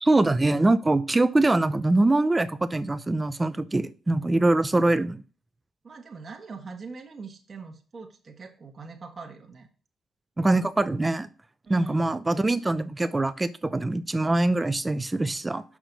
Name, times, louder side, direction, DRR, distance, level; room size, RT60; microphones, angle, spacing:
voice 1, 0.0-5.2 10.4-11.3 11.7-15.6, right 2 dB, 20° right, 12 dB, 0.6 m, -23 dB
voice 2, 5.8-9.7 11.6-12.0, right 4 dB, 40° right, 3 dB, 1.5 m, -42 dB
6.1 x 6.1 x 4.1 m, 0.38 s
cardioid pair, 80°, 0 cm